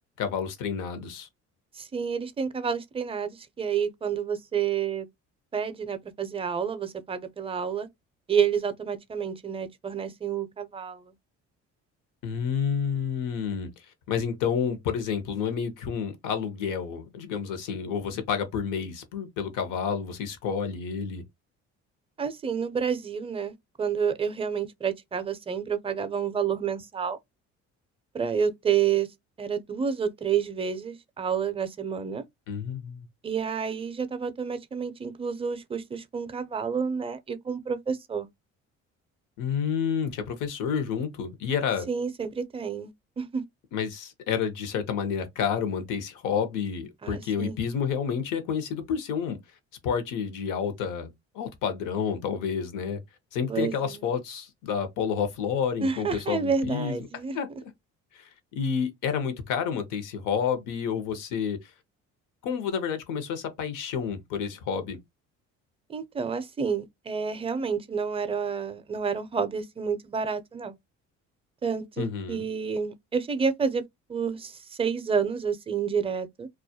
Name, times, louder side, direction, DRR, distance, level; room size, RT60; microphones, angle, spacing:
voice 1, 0.2-1.3 12.2-13.7 14.1-21.2 32.5-33.1 39.4-41.9 43.7-49.4 49.8-51.1 51.3-53.0 53.3-57.1 57.3-57.5 58.1-61.6 62.4-65.0 72.0-72.4, left 7 dB, 75° left, 0.8 m, -29 dB
voice 2, 1.8-3.3 3.6-5.1 5.5-7.9 8.3-11.0 22.2-27.2 28.1-29.1 29.4-32.2 33.2-38.3 41.9-42.9 43.2-43.4 47.0-47.6 53.5-54.0 55.8-57.4 65.9-70.7 71.6-73.8 74.1-74.5 74.8-76.5, right 6 dB, 20° right, 0.4 m, -29 dB
2.3 x 2.1 x 2.7 m
cardioid pair, 85°, 31 cm